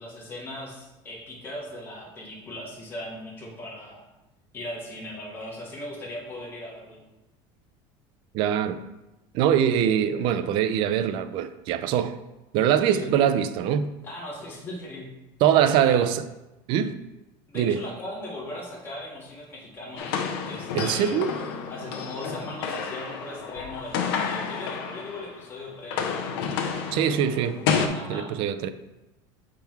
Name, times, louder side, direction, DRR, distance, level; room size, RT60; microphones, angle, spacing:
voice 1, 0.0-4.1 4.5-7.0 9.8-9.9 12.9-13.1 14.0-15.1 15.5-16.0 17.5-20.2 20.4-21.2 21.7-26.3 27.9-28.3, left 1 dB, 20° left, 1.1 m, -38 dB
voice 2, 8.3-8.8 9.3-12.2 12.5-13.9 15.4-16.2 16.7-16.9 17.5-17.8 20.7-21.3 26.9-27.6 28.1-28.7, right 9 dB, 45° right, 0.4 m, -23 dB
sound 1, 20.0-25.4 25.7-27.9, left 6 dB, 85° left, 0.8 m, -30 dB
7.0 x 3.8 x 4.5 m
cardioid pair, 175°, 12 cm